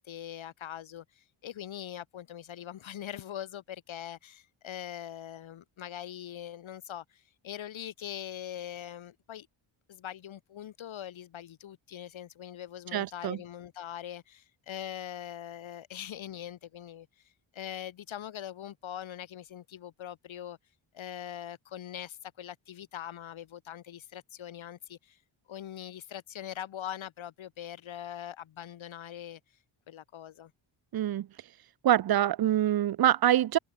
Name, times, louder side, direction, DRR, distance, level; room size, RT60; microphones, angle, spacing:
voice 1, 0.0-9.5 9.9-20.6 20.9-25.2 25.5-29.4 29.9-30.5, left 10 dB, 70° left, 1.3 m, -42 dB
voice 2, 12.9-13.4 30.9-31.3 31.8-33.6, right 12 dB, 50° right, 0.5 m, -25 dB
wide cardioid pair, 120°, 50 cm